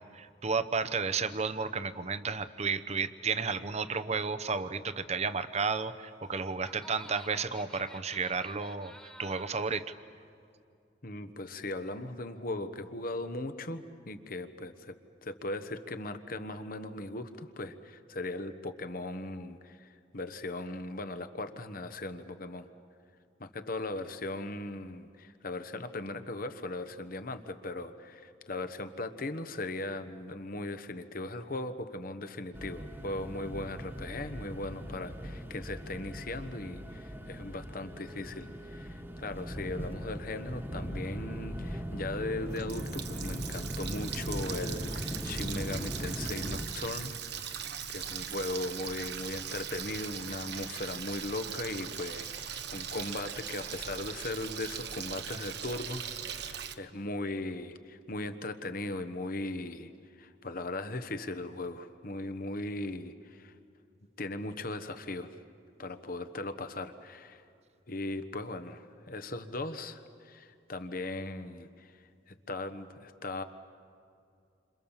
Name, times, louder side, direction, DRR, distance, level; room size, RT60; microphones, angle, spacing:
voice 1, 0.0-8.9 9.2-9.9, right 5 dB, 40° right, 11 dB, 0.9 m, -32 dB
Laughter, 6.0-9.8, left 1 dB, 5° left, 1.7 m, -52 dB
voice 2, 11.0-22.7 23.4-47.2 47.9-56.1 56.3-59.9 60.2-63.5 64.2-65.4 65.8-67.4 67.9-73.4, left 2 dB, 50° left, 10 dB, 1.3 m, -38 dB
sound 1, 32.5-46.7, equal, 15° right, 1.5 m, -39 dB
Water tap faucet, 42.3-56.7, right 8 dB, 65° right, 1.1 m, -40 dB
29.0 x 26.5 x 7.3 m, 2.5 s
head